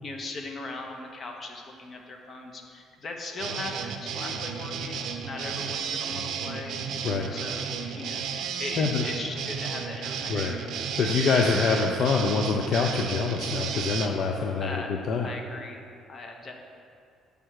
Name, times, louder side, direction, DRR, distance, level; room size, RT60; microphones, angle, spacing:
voice 1, 0.0-6.8 7.3-8.3 8.6-10.6 14.6-15.8 16.1-16.5, left 2 dB, 35° left, 2 dB, 0.8 m, -39 dB
sound 1, 3.4-14.1, right 6 dB, 70° right, 0.5 m, -33 dB
voice 2, 11.0-15.3, left 5 dB, 55° left, 2 dB, 0.4 m, -25 dB
7.5 x 3.4 x 6.3 m, 2.4 s
cardioid pair, 130°, 0 cm